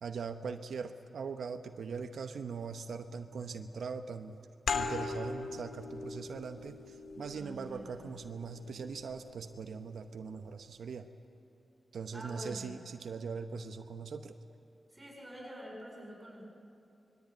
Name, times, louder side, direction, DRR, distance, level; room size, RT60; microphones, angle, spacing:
voice 1, 0.0-4.4 4.7-11.1 11.9-14.4, right 5 dB, 85° right, 7 dB, 0.9 m, -41 dB
sound 1, 4.7-9.9, left 4 dB, 75° left, 2.0 m, -40 dB
voice 2, 7.3-8.1 12.1-12.8 14.9-16.4, equal, 15° right, -1 dB, 7.4 m, -47 dB
24.5 x 21.5 x 9.2 m, 2.7 s
wide cardioid pair, 110°, 0 cm